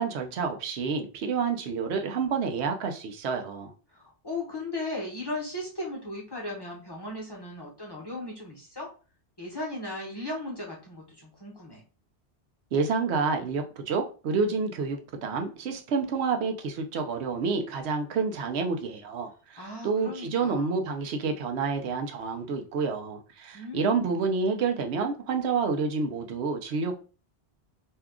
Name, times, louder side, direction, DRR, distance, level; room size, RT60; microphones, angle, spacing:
voice 1, 0.0-3.7 12.7-26.9, right 5 dB, 85° right, 0.9 m, -29 dB
voice 2, 3.9-8.9 9.4-11.8 19.6-20.9 23.5-24.2, left 2 dB, 25° left, 0.9 m, -37 dB
2.7 x 2.3 x 3.5 m
omnidirectional pair, 1.1 m